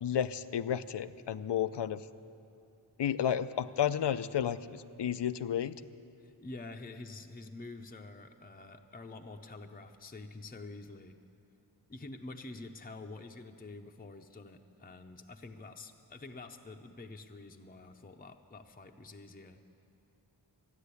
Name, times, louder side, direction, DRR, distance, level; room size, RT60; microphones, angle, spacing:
voice 1, 0.0-2.0 3.0-5.7, left 9 dB, 75° left, 14 dB, 0.5 m, -32 dB
voice 2, 6.2-11.2 11.9-19.6, left 3 dB, 20° left, 5 dB, 0.6 m, -47 dB
13.5 x 9.6 x 8.3 m, 2.6 s
wide cardioid pair, 55°, 42 cm